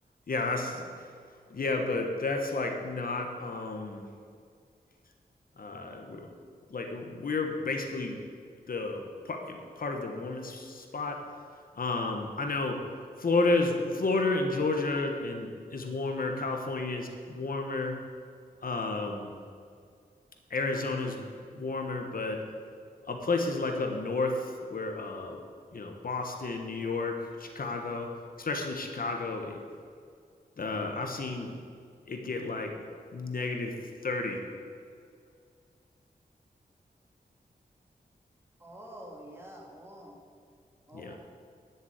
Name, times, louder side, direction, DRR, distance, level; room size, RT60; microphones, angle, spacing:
voice 1, 0.3-0.9 1.5-4.0 5.6-6.3 6.7-8.2 8.7-11.2 11.7-12.8 13.2-18.0 18.6-19.4 20.5-22.4 23.1-25.4 25.7-28.1 28.4-29.6 30.6-31.6 32.1-32.8 33.1-33.7 34.0-34.4 40.9-41.2, left 3 dB, 65° left, 3 dB, 1.3 m, -31 dB
voice 2, 38.6-40.2 40.9-41.2, right 1 dB, 15° right, -1 dB, 2.2 m, -47 dB
11.5 x 7.2 x 8.1 m, 2.2 s
wide cardioid pair, 120°, 16 cm